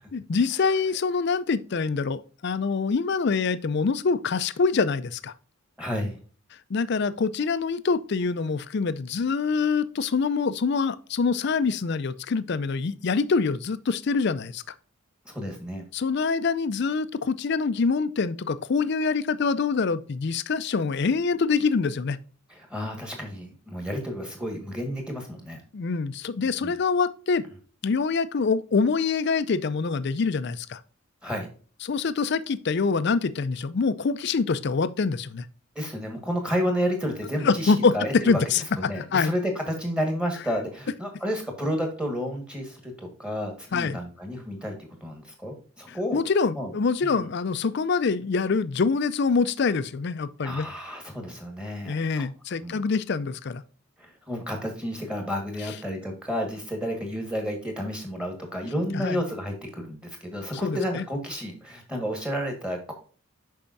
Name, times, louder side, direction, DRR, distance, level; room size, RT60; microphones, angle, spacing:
voice 1, 0.1-5.3 6.7-14.7 15.9-22.2 25.7-27.4 27.8-30.8 31.8-35.5 37.4-39.3 43.7-44.0 45.9-50.7 51.9-53.6 58.9-59.2 60.6-61.0, left 4 dB, 50° left, 0.4 m, -25 dB
voice 2, 5.8-6.2 15.2-15.8 22.5-25.6 26.4-26.7 31.2-31.5 35.7-38.4 38.8-46.2 46.6-46.7 47.0-47.3 50.4-52.3 52.6-52.8 54.0-62.9, equal, 5° right, 1.5 m, -31 dB
6.9 x 5.5 x 2.6 m
head